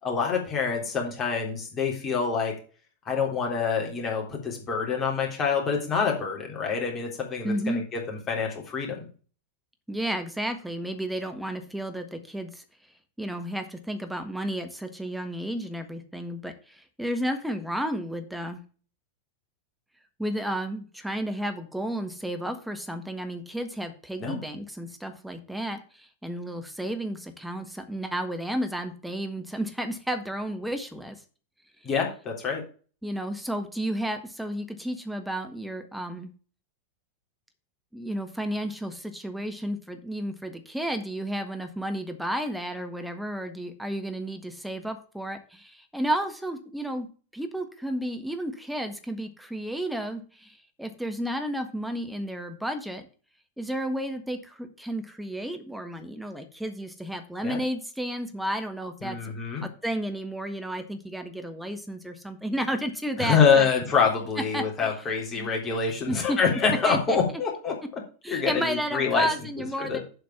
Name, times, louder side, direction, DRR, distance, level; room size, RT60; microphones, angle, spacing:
voice 1, 0.0-2.5 3.1-9.1 24.2-24.4 31.8-32.6 57.4-57.6 59.0-59.7 63.2-67.7 68.3-69.3 69.6-70.0, left 5 dB, 25° left, 0 dB, 3.5 m, -26 dB
voice 2, 7.4-7.8 9.9-12.6 13.2-18.6 20.2-31.2 33.0-36.3 37.9-47.1 47.3-53.1 53.6-59.2 59.6-63.7 64.5-64.9 65.4-65.5 66.0-66.4 66.8-67.2 68.2-70.0, right 1 dB, ahead, 6 dB, 1.5 m, -32 dB
7.9 x 5.1 x 7.1 m, 0.38 s
figure-of-eight pair, 90°, 0 cm